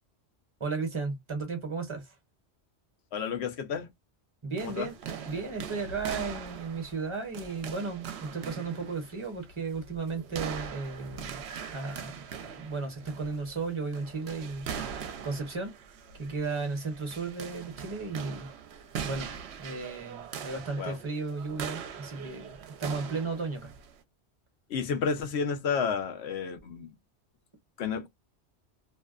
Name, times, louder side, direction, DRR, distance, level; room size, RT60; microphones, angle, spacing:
voice 1, 0.6-2.1 4.4-4.9 5.3-11.4 11.7-14.7 15.2-15.8 16.1-18.5 19.0-19.3 19.6-23.7, right 4 dB, 30° right, 0.8 m, -35 dB
voice 2, 3.1-3.9 4.6-4.9 20.8-21.0 24.7-26.9 27.8-28.1, left 6 dB, 75° left, 0.9 m, -31 dB
sound 1, 4.6-24.0, right 7 dB, 75° right, 0.8 m, -41 dB
2.6 x 2.1 x 2.3 m
omnidirectional pair, 1.1 m